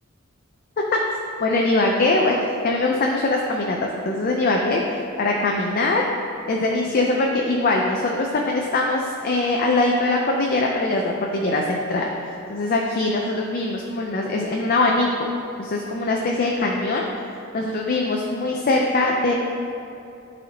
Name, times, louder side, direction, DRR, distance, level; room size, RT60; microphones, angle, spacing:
voice 1, 1.4-2.4 2.6-4.8 5.2-6.0 6.5-12.1 12.5-15.1 15.6-17.1 17.5-19.3, left 2 dB, 45° left, 0 dB, 0.5 m, -22 dB
11.0 x 4.1 x 2.8 m, 2.7 s
head